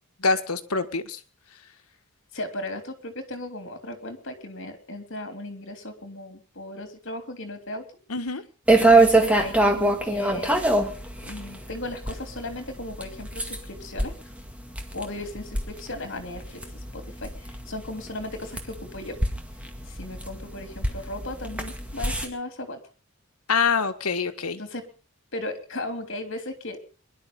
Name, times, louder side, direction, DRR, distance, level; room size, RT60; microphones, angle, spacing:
voice 1, 0.2-1.2 8.1-8.4 23.5-24.6, left 4 dB, 80° left, 9 dB, 1.6 m, -25 dB
voice 2, 2.3-7.9 8.8-10.6 11.2-14.1 14.9-16.6 16.9-19.2 19.9-22.8 24.6-24.9 25.3-26.8, left 1 dB, 55° left, 7 dB, 3.1 m, -36 dB
sound 1, 8.7-22.3, right 2 dB, 5° right, 1.9 m, -25 dB
22.0 x 11.5 x 5.4 m, 0.39 s
head